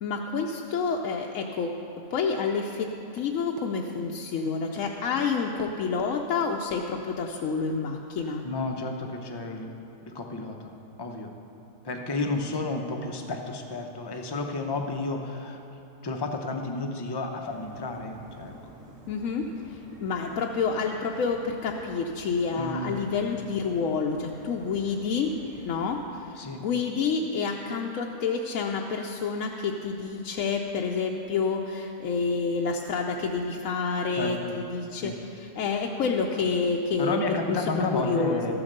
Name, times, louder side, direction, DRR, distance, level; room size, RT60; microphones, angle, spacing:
voice 1, 0.0-1.7 2.1-8.4 19.1-25.3 25.6-38.4, left 5 dB, 65° left, 0 dB, 0.9 m, -29 dB
Run, 3.1-6.1 6.4-6.6 7.0-7.2 7.7-7.8 8.4-8.5, right 4 dB, 55° right, 0.8 m, -46 dB
voice 2, 8.4-9.7 10.1-11.3 11.8-15.6 16.0-18.5 22.5-22.9 26.4-26.6 34.1-34.5 34.9-35.2 37.0-38.5, left 2 dB, 30° left, 3 dB, 0.4 m, -31 dB
sound 1, 17.5-26.0, right 1 dB, 75° right, 2.6 m, -49 dB
13.0 x 7.1 x 6.6 m, 2.9 s
omnidirectional pair, 1.7 m